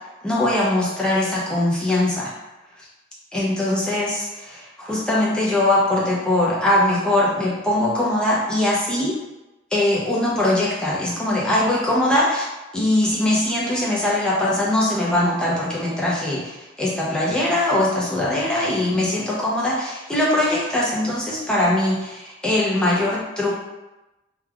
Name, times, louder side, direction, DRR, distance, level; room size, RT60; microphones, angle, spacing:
voice 1, 0.2-2.3 3.3-9.2 9.7-12.4 12.7-23.5, left 1 dB, 5° left, -6 dB, 0.5 m, -21 dB
3.2 x 2.3 x 2.3 m, 1.0 s
head